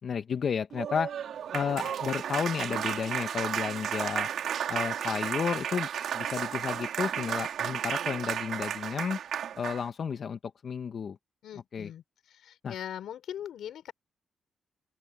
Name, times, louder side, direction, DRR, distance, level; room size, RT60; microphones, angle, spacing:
voice 1, 0.0-1.1 1.5-4.3 4.7-5.9 6.1-9.2 9.6-11.2 11.7-11.9 12.6-12.7, left 6 dB, 55° left, 0.8 m, -32 dB
Applause, 0.7-9.9, right 9 dB, 80° right, 2.7 m, -33 dB
voice 2, 11.4-12.0 12.3-13.9, left 10 dB, 85° left, 5.2 m, -40 dB
open air
cardioid pair, 120°, 0 cm